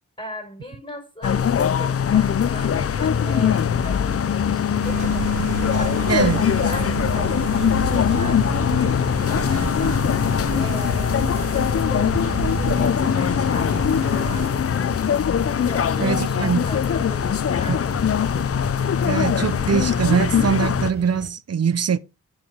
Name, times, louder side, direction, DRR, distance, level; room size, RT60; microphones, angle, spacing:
voice 1, 0.2-15.0 15.6-18.3, left 1 dB, 15° left, 5.1 m, -38 dB
sound 1, 1.2-20.9, left 8 dB, 50° left, 0.6 m, -21 dB
sound 2, 2.3-21.3, right 1 dB, 35° right, 5.4 m, -37 dB
sound 3, 4.8-14.5, right 9 dB, 90° right, 0.8 m, -31 dB
voice 2, 6.1-6.4 16.0-16.7 17.7-17.8 19.0-22.0, right 7 dB, 55° right, 0.8 m, -22 dB
11.0 x 5.6 x 4.7 m
cardioid pair, 55°, 30 cm